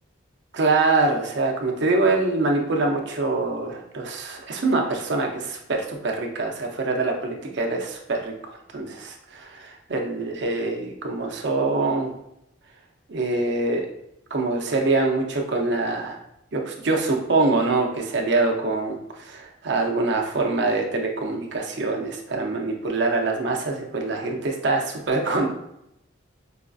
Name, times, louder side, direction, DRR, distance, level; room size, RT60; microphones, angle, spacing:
voice 1, 0.5-12.1 13.1-13.9 14.3-16.2 16.5-25.5, right 3 dB, 60° right, 1 dB, 0.6 m, -24 dB
4.8 x 2.5 x 2.3 m, 0.80 s
head